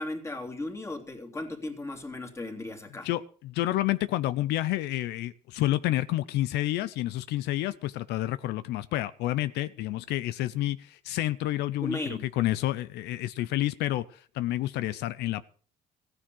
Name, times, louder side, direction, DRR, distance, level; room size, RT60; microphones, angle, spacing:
voice 1, 0.0-3.1 11.8-12.3, left 2 dB, 15° left, 4 dB, 2.9 m, -36 dB
voice 2, 3.0-15.4, left 15 dB, 80° left, 16 dB, 0.6 m, -29 dB
15.0 x 9.7 x 6.2 m, 0.42 s
cardioid pair, 110°, 17 cm